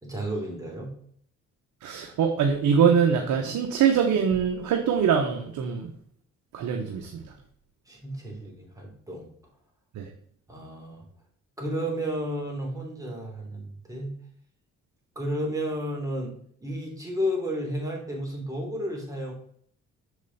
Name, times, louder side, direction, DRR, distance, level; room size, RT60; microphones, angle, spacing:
voice 1, 0.0-0.9 7.9-9.3 10.5-11.0 11.6-14.1 15.1-16.3 16.6-19.3, equal, 10° right, -1 dB, 3.0 m, -32 dB
voice 2, 1.8-5.9 6.5-7.2 9.9-10.1, right 7 dB, 75° right, 4 dB, 1.0 m, -23 dB
6.6 x 5.1 x 4.0 m, 0.62 s
cardioid pair, 90°, 30 cm